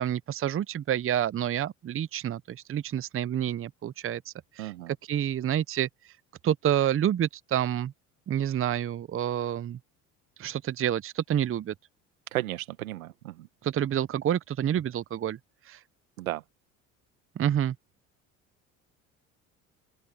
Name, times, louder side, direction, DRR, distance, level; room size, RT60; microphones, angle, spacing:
voice 1, 0.0-4.7 5.1-6.1 6.4-7.9 8.3-9.8 10.4-11.7 13.6-15.4 15.7-15.8 17.4-17.7, right 10 dB, 30° right, 0.8 m, -28 dB
voice 2, 4.6-4.9 12.3-13.5 16.2-16.4, right 15 dB, 85° right, 1.9 m, -34 dB
open air
hypercardioid pair, 70°, 41 cm